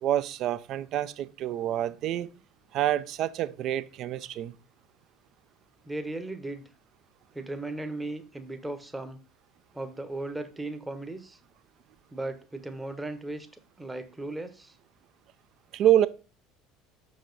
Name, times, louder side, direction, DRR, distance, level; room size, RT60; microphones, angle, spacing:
voice 1, 0.0-2.3 2.7-4.5 15.7-16.1, right 12 dB, 45° right, 0.4 m, -27 dB
voice 2, 5.8-6.7 7.3-9.2 9.7-11.4 12.1-13.5 13.8-14.7, right 2 dB, 10° right, 0.8 m, -36 dB
6.4 x 4.8 x 3.9 m
figure-of-eight pair, 65°, 0 cm